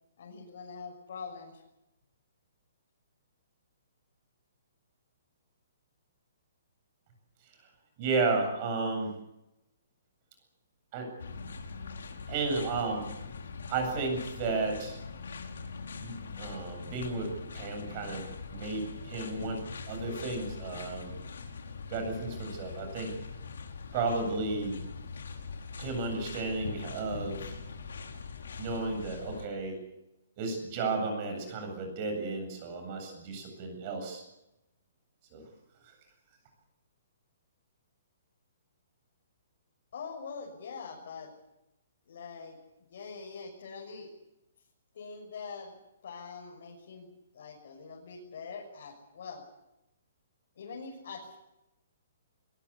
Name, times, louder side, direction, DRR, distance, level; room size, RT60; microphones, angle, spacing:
voice 1, 0.2-1.6 39.9-41.3 42.1-42.6 42.9-44.1 44.9-45.7 46.0-49.4 50.6-51.4, left 5 dB, 50° left, -1 dB, 6.6 m, -43 dB
voice 2, 8.0-9.1 10.9-11.1 12.3-13.1 13.7-15.0 16.0-21.2 21.9-23.2 23.9-24.8 25.8-27.5 28.6-29.8 30.4-34.2 35.3-35.5 35.9-36.0, right 3 dB, 25° right, 5 dB, 7.9 m, -33 dB
sound 1, 11.2-29.5, left 4 dB, 90° left, 5.1 m, -42 dB
22.0 x 22.0 x 8.5 m, 0.90 s
hypercardioid pair, 175°, 0 cm